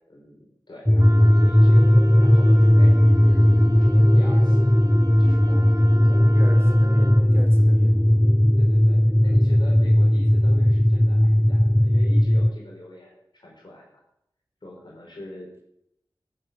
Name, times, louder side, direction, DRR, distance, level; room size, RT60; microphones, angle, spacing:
voice 1, 0.1-3.9 4.1-4.7 5.2-6.2 8.6-13.9 14.6-15.6, left 1 dB, 65° left, -2 dB, 4.4 m, -43 dB
sound 1, 0.9-12.5, equal, 10° left, 0.5 m, -17 dB
Wind instrument woodwind instrument, 1.0-7.3, right 2 dB, 45° right, 1.4 m, -41 dB
voice 2, 6.3-8.0, right 1 dB, 30° right, 1 dB, 3.9 m, -38 dB
14.0 x 7.6 x 7.9 m, 0.80 s
wide cardioid pair, 55°, 8 cm